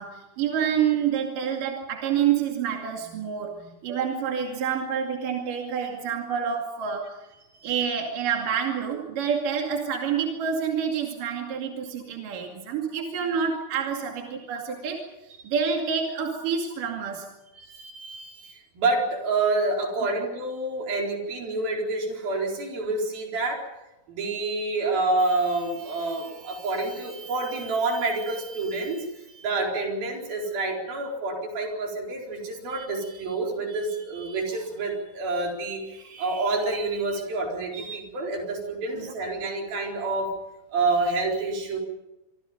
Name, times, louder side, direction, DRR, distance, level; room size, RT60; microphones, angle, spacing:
voice 1, 0.0-7.2 7.6-17.3 20.0-20.1 39.0-39.1, right 7 dB, 65° right, 1 dB, 4.0 m, -28 dB
voice 2, 17.6-23.6 24.1-40.3 40.7-41.8, right 3 dB, 85° right, 0 dB, 6.3 m, -28 dB
26.5 x 25.0 x 5.3 m, 0.96 s
omnidirectional pair, 4.1 m